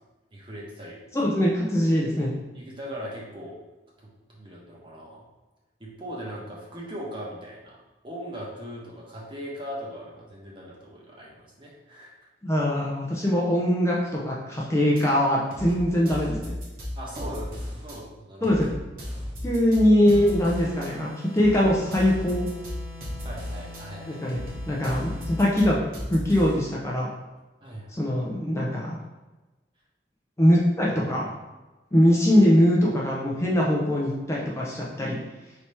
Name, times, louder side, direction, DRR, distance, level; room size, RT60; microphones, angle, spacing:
voice 1, 0.3-1.0 2.5-3.5 4.3-5.2 5.8-7.8 8.0-12.1 17.0-18.6 23.2-24.2 27.6-27.9, equal, 30° right, -4 dB, 0.9 m, -39 dB
voice 2, 1.1-2.3 12.4-16.5 18.4-18.7 19.4-21.1 21.3-22.5 24.1-24.4 24.7-25.8 26.1-27.1 27.9-29.0 30.4-31.3 31.9-35.2, equal, 15° left, -4 dB, 0.5 m, -22 dB
sound 1, 15.0-15.1 15.5-18.0 18.4-20.9 21.4-23.8 24.3-26.7, left 1 dB, 50° right, 1.0 m, -35 dB
sound 2, 20.0-25.9, left 2 dB, ahead, 0.8 m, -44 dB
3.3 x 2.9 x 4.2 m, 1.1 s
head